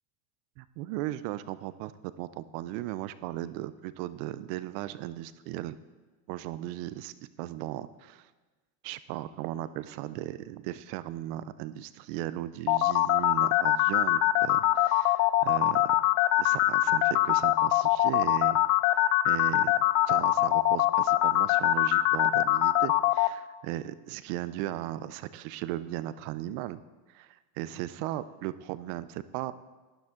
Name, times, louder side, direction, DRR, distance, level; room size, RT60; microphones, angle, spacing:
voice 1, 0.6-5.8 6.3-8.3 8.8-16.0 16.4-18.6 19.2-19.8 20.1-26.8 27.1-29.5, right 14 dB, 60° right, 15 dB, 0.7 m, -37 dB
sound 1, 12.7-23.3, left 16 dB, 55° left, 0.6 m, -23 dB
12.0 x 10.5 x 3.8 m, 1.3 s
supercardioid pair, 115°, 50 cm